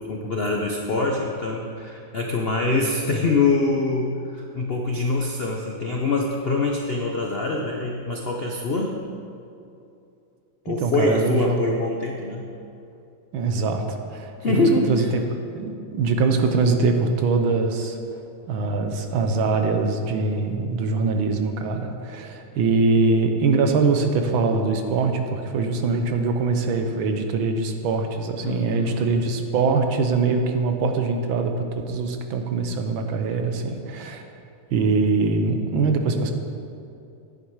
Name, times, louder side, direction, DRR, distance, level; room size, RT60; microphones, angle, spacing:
voice 1, 0.0-9.0 10.6-12.4 14.4-15.1 28.4-29.1, left 3 dB, 65° left, 0 dB, 0.5 m, -24 dB
voice 2, 10.7-11.6 13.3-15.1 15.5-18.0 18.4-34.2 34.7-36.3, right 4 dB, 90° right, 5 dB, 1.7 m, -23 dB
10.5 x 9.7 x 4.7 m, 2.6 s
omnidirectional pair, 2.1 m